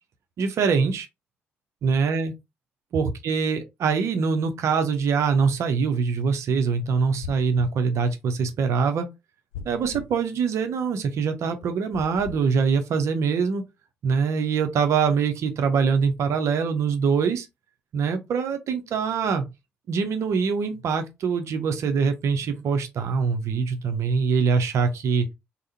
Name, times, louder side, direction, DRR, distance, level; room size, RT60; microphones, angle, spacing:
voice 1, 0.4-1.1 1.8-2.3 2.9-9.1 9.6-13.6 14.0-17.5 17.9-19.5 19.9-25.3, right 5 dB, 55° right, 0.6 m, -24 dB
sound 1, 7.2-7.8 9.5-10.1 11.9-12.4, left 6 dB, 75° left, 0.7 m, -38 dB
3.4 x 2.0 x 2.7 m
figure-of-eight pair, 45°, 6 cm